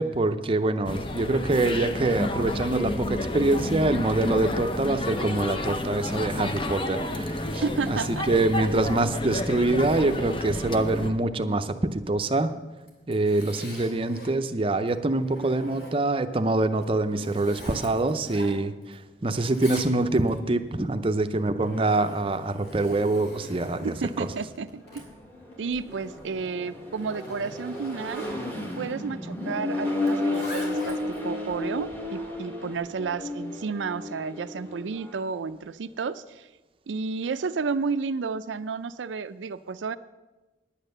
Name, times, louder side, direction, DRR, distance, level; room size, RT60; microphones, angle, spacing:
voice 1, 0.0-12.6 13.1-24.3, right 2 dB, 30° right, 9 dB, 0.6 m, -25 dB
sound 1, 0.8-11.1, left 2 dB, 30° left, 0.7 m, -31 dB
voice 2, 7.6-8.3 23.8-24.8 25.6-28.3 28.8-36.5 36.9-40.0, right 5 dB, 85° right, 12 dB, 0.4 m, -31 dB
Zipper (clothing), 12.8-14.4 14.9-16.2 16.7-19.0 19.2-20.4 21.2-28.4 30.0-31.2, left 1 dB, 60° left, 3.0 m, -44 dB
Accelerating revving vroom, 24.8-35.2, left 2 dB, 10° left, 1.4 m, -33 dB
10.0 x 9.0 x 6.6 m, 1.1 s
head